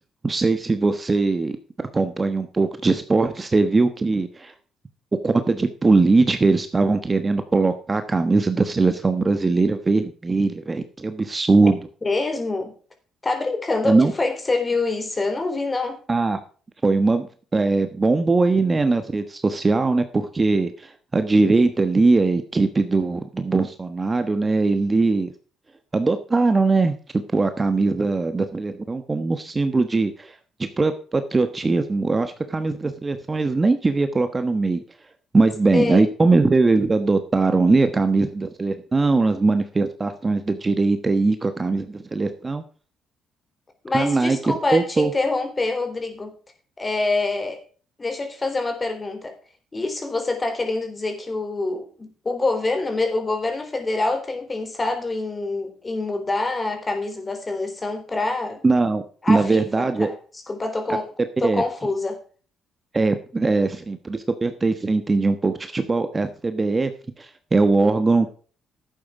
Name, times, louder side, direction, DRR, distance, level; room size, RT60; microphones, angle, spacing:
voice 1, 0.2-1.6 1.9-4.5 5.2-11.8 13.8-14.1 16.1-16.4 16.8-17.3 17.5-25.3 25.9-27.0 27.3-30.3 30.8-34.8 35.3-42.6 43.9-44.4 44.7-45.1 58.6-59.0 59.3-60.1 61.4-61.6 62.9-66.9 67.2-68.3, right 3 dB, 25° right, 1.2 m, -20 dB
voice 2, 12.0-12.7 13.2-16.0 35.7-36.0 43.8-46.3 46.8-47.6 48.0-49.4 49.7-58.6 59.2-60.2 60.5-61.1 61.4-62.2, left 3 dB, 25° left, 3.6 m, -25 dB
11.5 x 8.6 x 4.8 m
cardioid pair, 90°, 0 cm